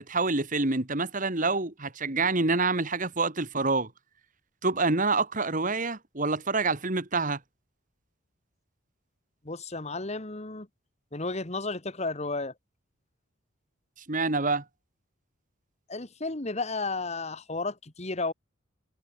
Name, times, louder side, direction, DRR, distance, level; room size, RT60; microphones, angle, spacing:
voice 1, 0.0-3.9 4.6-7.4 14.1-14.6, right 3 dB, 40° right, 2.1 m, -27 dB
voice 2, 9.4-10.7 11.1-12.5 15.9-18.3, left 3 dB, 30° left, 1.5 m, -33 dB
head